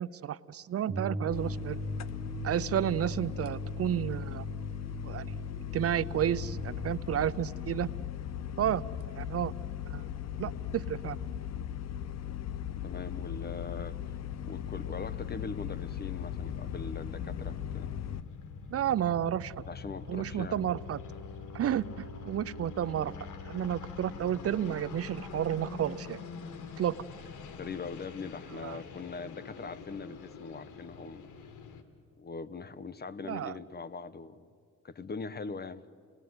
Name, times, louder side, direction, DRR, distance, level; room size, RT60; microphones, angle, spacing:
voice 1, 0.0-1.8 2.4-4.4 5.0-5.2 5.7-7.9 8.6-8.8 9.2-9.5 9.9-10.0 10.4-11.2 18.7-19.5 20.1-21.0 21.5-23.1 23.4-26.2 26.8-26.9 28.6-28.8 33.3-33.6, right 10 dB, 50° right, 18 dB, 0.6 m, -31 dB
sound 1, 0.9-6.9, right 1 dB, 20° right, 1.6 m, -39 dB
sound 2, 1.3-18.2, left 10 dB, 60° left, 0.9 m, -38 dB
voice 2, 12.8-14.2 14.4-17.9 19.6-20.8 27.5-31.3 32.2-34.5 34.8-35.8, left 4 dB, 35° left, 15 dB, 1.1 m, -41 dB
sound 3, 13.3-31.8, left 5 dB, 80° left, 2.1 m, -45 dB
29.0 x 19.5 x 9.6 m, 2.3 s
cardioid pair, 90°, 30 cm